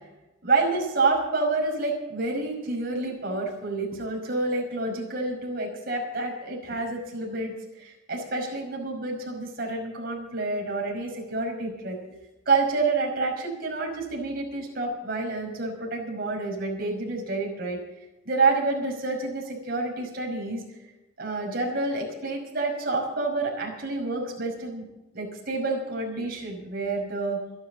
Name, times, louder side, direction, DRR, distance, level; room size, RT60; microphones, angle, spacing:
voice 1, 0.4-12.0 12.5-17.8 18.3-20.6 21.2-24.8 25.1-27.4, right 3 dB, 50° right, 0 dB, 5.4 m, -28 dB
26.5 x 10.5 x 3.9 m, 1.0 s
head